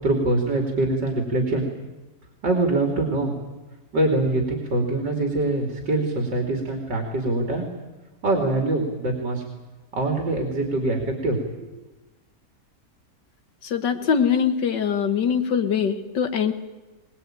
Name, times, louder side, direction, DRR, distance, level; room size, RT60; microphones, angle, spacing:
voice 1, 0.0-1.6 2.4-3.3 3.9-7.7 8.2-9.4 9.9-11.7, right 2 dB, 90° right, 3 dB, 3.5 m, -24 dB
voice 2, 13.6-16.5, left 7 dB, 85° left, 8 dB, 2.1 m, -22 dB
22.0 x 20.0 x 9.1 m, 1.1 s
omnidirectional pair, 1.9 m